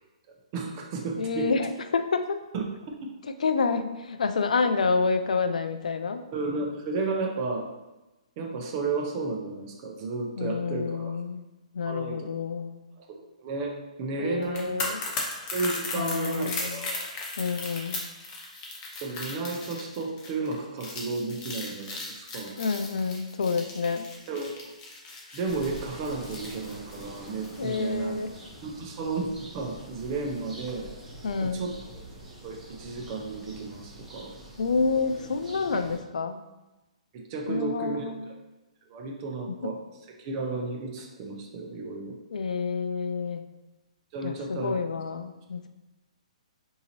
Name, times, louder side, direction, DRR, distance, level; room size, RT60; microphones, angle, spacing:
voice 1, 0.5-1.5 2.5-2.6 3.0-3.1 6.3-7.7 8.4-11.2 11.9-12.3 13.0-14.9 15.5-17.1 19.0-22.6 24.3-24.6 25.3-28.2 28.6-30.9 31.4-31.7 32.4-34.3 35.7-35.8 37.1-38.1 38.9-39.8 40.2-42.2 44.1-44.9, right 3 dB, 35° right, 1 dB, 0.6 m, -33 dB
voice 2, 1.2-2.4 3.4-6.2 10.4-11.4 11.7-12.8 14.2-15.0 15.9-16.8 17.4-18.0 22.6-24.1 27.6-28.3 31.2-31.7 34.6-36.4 37.5-38.2 42.3-43.5 44.2-45.7, left 4 dB, 85° left, 9 dB, 0.3 m, -28 dB
sound 1, 14.4-27.6 27.9-28.0, left 3 dB, 30° left, 0.7 m, -37 dB
sound 2, 25.5-36.0, right 1 dB, 5° right, 1.0 m, -45 dB
3.8 x 2.7 x 2.9 m, 1.0 s
hypercardioid pair, 145°, 4 cm